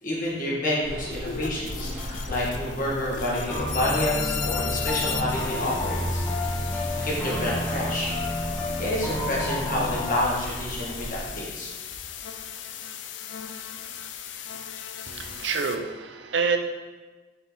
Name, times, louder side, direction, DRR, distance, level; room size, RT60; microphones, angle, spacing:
voice 1, 0.0-6.3 6.7-8.1 8.8-11.7, left 1 dB, 45° left, -5 dB, 1.8 m, -29 dB
sound 1, 0.8-11.3, equal, 25° right, 1.8 m, -38 dB
sound 2, 1.2-15.8, left 8 dB, 80° left, 0.5 m, -37 dB
sound 3, 2.4-2.9 3.5-10.2, left 1 dB, 15° left, 1.3 m, -30 dB
voice 2, 15.1-16.6, right 5 dB, 75° right, 6 dB, 0.6 m, -27 dB
7.6 x 4.1 x 3.9 m, 1.3 s
head